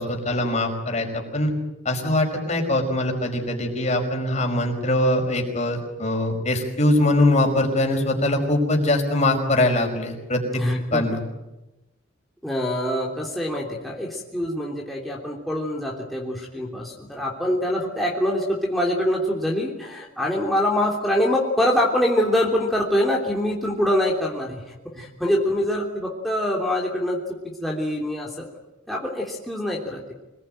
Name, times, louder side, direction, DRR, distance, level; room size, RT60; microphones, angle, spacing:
voice 1, 0.0-1.5 1.8-10.6 10.9-11.2, left 1 dB, 35° left, 3 dB, 5.3 m, -22 dB
voice 2, 10.6-11.0 12.4-24.6 25.0-27.2 27.6-28.4 28.9-30.1, left 1 dB, ahead, -3 dB, 3.3 m, -24 dB
27.0 x 20.5 x 9.2 m, 0.99 s
head